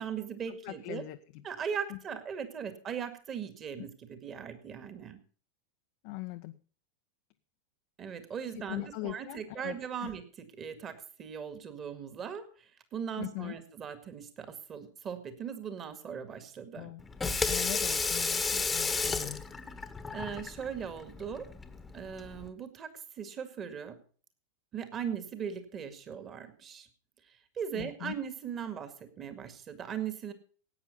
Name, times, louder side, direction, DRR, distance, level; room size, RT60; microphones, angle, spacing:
voice 1, 0.0-1.1 1.4-5.2 8.0-10.9 11.2-16.9 20.1-21.5 21.9-22.9 23.2-24.0 24.7-26.9 27.6-30.3, right 7 dB, 25° right, 9 dB, 2.0 m, -39 dB
voice 2, 0.6-1.4 1.9-2.0 6.0-6.6 8.7-10.1 13.2-13.6 16.8-17.0 17.5-19.4 27.7-28.1, left 19 dB, 45° left, 7 dB, 0.6 m, -41 dB
Water tap faucet / Sink (filling or washing), 17.0-22.5, left 4 dB, 10° left, 1.2 m, -33 dB
17.0 x 9.1 x 5.4 m, 0.43 s
figure-of-eight pair, 90°, 0 cm